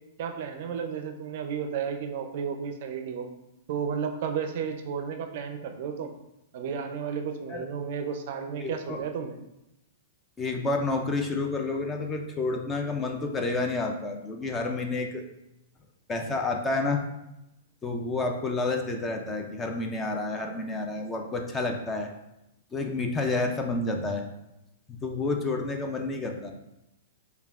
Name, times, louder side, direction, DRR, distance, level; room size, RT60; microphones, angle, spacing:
voice 1, 0.2-3.3 3.7-6.1 6.5-9.4, right 7 dB, 50° right, 5 dB, 0.4 m, -33 dB
voice 2, 8.6-9.0 10.4-15.2 16.1-17.0 17.8-22.1 22.7-24.3 24.9-26.5, left 3 dB, 15° left, 3 dB, 0.3 m, -29 dB
5.4 x 2.2 x 2.4 m, 0.88 s
hypercardioid pair, 155°, 0 cm